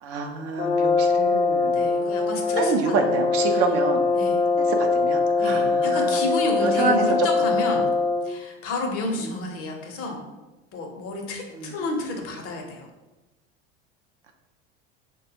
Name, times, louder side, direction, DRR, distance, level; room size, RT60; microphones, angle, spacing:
voice 1, 0.0-1.8 2.6-4.0 4.6-6.2 6.6-7.0 11.5-11.8, right 4 dB, 50° right, 5 dB, 0.5 m, -27 dB
Brass instrument, 0.6-8.4, left 3 dB, 15° left, 0.4 m, -22 dB
voice 2, 1.7-3.2 3.5-3.6 4.1-4.4 5.4-7.9 8.2-10.2 10.7-12.9, left 3 dB, 45° left, 2 dB, 0.7 m, -30 dB
3.3 x 2.2 x 2.7 m, 1.1 s
supercardioid pair, 105°, 31 cm